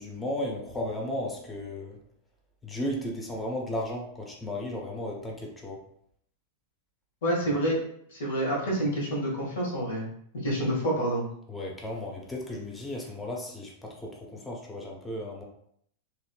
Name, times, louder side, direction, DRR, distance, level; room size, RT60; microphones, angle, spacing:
voice 1, 0.0-2.0 2.6-5.8 11.5-15.4, left 1 dB, 10° left, -1 dB, 0.8 m, -35 dB
voice 2, 7.2-7.8 8.1-10.1 10.3-11.2, right 1 dB, 60° left, -3 dB, 1.2 m, -28 dB
2.9 x 2.9 x 2.3 m, 0.68 s
figure-of-eight pair, 90°, 0 cm